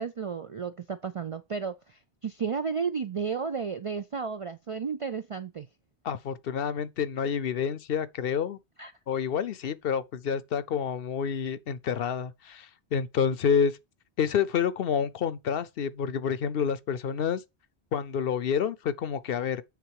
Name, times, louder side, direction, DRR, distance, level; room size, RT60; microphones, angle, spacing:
voice 1, 0.0-5.7 8.8-8.9, right 6 dB, 50° right, 0.4 m, -33 dB
voice 2, 6.0-8.6 9.1-13.8 14.2-17.4 17.9-19.6, left 7 dB, 65° left, 0.8 m, -28 dB
9.2 x 3.9 x 4.7 m
omnidirectional pair, 1.1 m